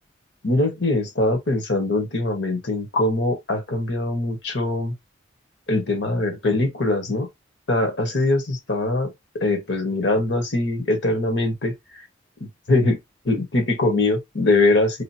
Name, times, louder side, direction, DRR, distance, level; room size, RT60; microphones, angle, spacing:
voice 1, 0.4-4.9 5.7-7.3 7.7-11.7 12.4-13.0 13.2-15.0, left 2 dB, 65° left, 1.4 m, -22 dB
5.0 x 2.5 x 2.9 m
head